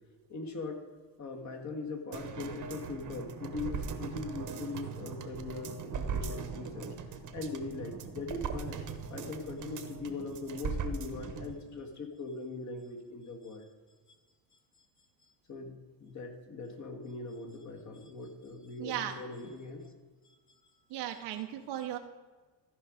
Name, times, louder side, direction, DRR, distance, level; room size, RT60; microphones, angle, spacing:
voice 1, 0.3-0.8 1.2-6.9 7.3-8.8 9.1-13.7 15.2-19.9 21.1-21.4, left 3 dB, 40° left, 3 dB, 1.7 m, -41 dB
sound 1, 2.1-11.5 11.9-12.0, right 5 dB, 45° right, 1.1 m, -39 dB
voice 2, 18.8-19.2 20.9-22.0, right 11 dB, 75° right, 4 dB, 0.8 m, -36 dB
14.0 x 5.1 x 5.0 m, 1.4 s
cardioid pair, 110°, 42 cm